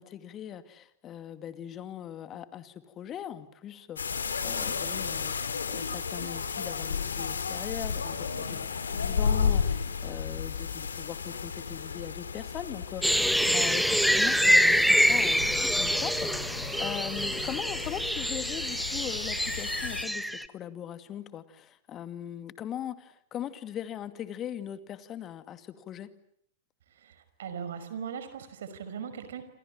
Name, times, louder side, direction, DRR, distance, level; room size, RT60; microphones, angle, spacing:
voice 1, 0.0-26.1, left 10 dB, 30° left, 10 dB, 2.4 m, -40 dB
sound 1, 4.0-20.0, left 6 dB, 80° left, 3.1 m, -33 dB
sound 2, 13.0-20.4, equal, ahead, 1.3 m, -25 dB
voice 2, 27.0-29.4, right 7 dB, 65° right, 11 dB, 5.4 m, -39 dB
28.0 x 27.0 x 7.5 m, 0.69 s
figure-of-eight pair, 100°, 0 cm